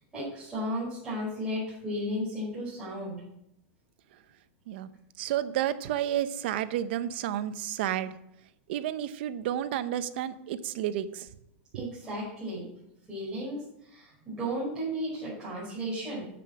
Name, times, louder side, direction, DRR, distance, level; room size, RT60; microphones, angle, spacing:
voice 1, 0.1-3.1 11.7-12.6 13.1-16.3, equal, 10° right, -10 dB, 5.2 m, -34 dB
voice 2, 5.2-8.1 8.7-11.3 11.7-11.9, right 11 dB, 60° right, 12 dB, 0.8 m, -31 dB
9.7 x 7.8 x 6.3 m, 0.79 s
supercardioid pair, 160°, 7 cm